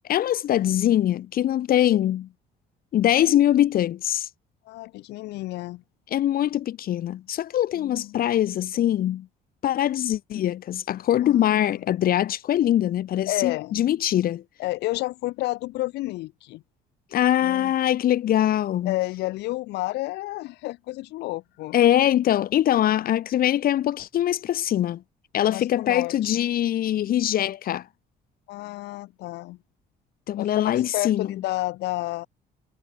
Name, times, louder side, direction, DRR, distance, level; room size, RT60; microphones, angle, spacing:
voice 1, 0.1-2.3 2.9-4.3 6.1-9.3 9.6-14.4 17.1-19.0 21.7-25.0 25.3-27.9 30.3-31.3, left 12 dB, 60° left, 2.1 m, -22 dB
voice 2, 4.7-5.8 7.8-8.2 11.2-11.8 13.3-13.8 14.6-16.6 17.4-17.7 18.8-21.8 25.5-26.3 28.5-29.6 30.4-32.3, left 18 dB, 85° left, 2.2 m, -31 dB
cardioid pair, 110°, 17 cm